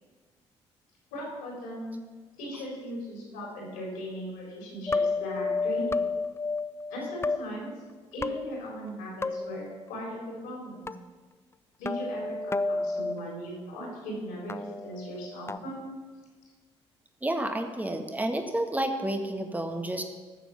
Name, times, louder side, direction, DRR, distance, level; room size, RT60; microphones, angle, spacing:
voice 1, 1.1-1.9 2.4-6.1 6.9-7.7 8.1-10.9 11.8-15.8, equal, 75° left, -2 dB, 4.2 m, -38 dB
sound 1, 4.9-7.4 8.2-8.9 9.2-9.6 10.9-11.0 11.9-13.1 14.5-15.6, left 3 dB, 15° left, 0.5 m, -31 dB
voice 2, 17.2-20.0, right 1 dB, 10° right, 5 dB, 1.5 m, -30 dB
13.5 x 6.9 x 6.6 m, 1.4 s
figure-of-eight pair, 50°, 15 cm